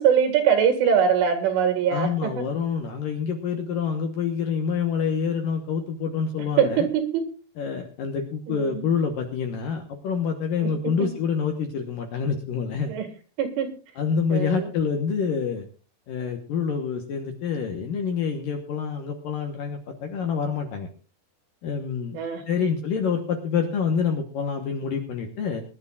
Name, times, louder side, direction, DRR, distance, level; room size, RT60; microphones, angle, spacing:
voice 1, 0.0-2.4 6.6-7.2 8.5-8.8 10.6-11.1 12.9-13.1 13.4-13.7 14.3-14.7 22.1-22.4, right 8 dB, 85° right, 6 dB, 4.5 m, -22 dB
voice 2, 1.9-6.9 7.6-12.9 14.0-15.7 16.1-20.9 21.6-22.2 22.5-25.6, left 6 dB, 70° left, 4 dB, 2.2 m, -27 dB
24.5 x 11.5 x 2.5 m, 0.35 s
omnidirectional pair, 5.4 m